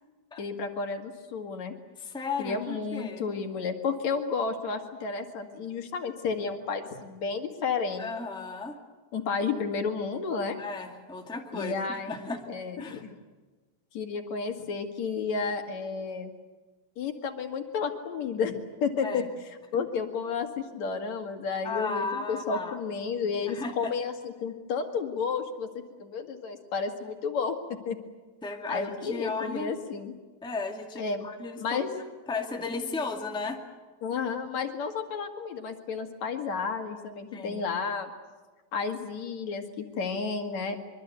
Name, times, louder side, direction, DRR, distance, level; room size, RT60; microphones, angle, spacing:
voice 1, 0.4-1.7 2.4-8.1 9.1-10.6 11.5-13.1 13.9-16.3 17.0-25.7 26.0-28.0 28.7-30.1 31.0-31.3 31.6-31.9 34.0-38.1 38.7-40.8, left 5 dB, 70° left, 5 dB, 3.4 m, -32 dB
voice 2, 2.0-3.2 8.0-8.8 10.6-12.4 12.8-13.0 19.0-19.3 19.7-19.8 21.6-22.8 23.5-23.9 28.4-29.7 30.4-31.8 32.3-33.6 37.3-37.6, left 3 dB, ahead, 2 dB, 1.8 m, -35 dB
25.0 x 23.5 x 8.2 m, 1.3 s
omnidirectional pair, 3.3 m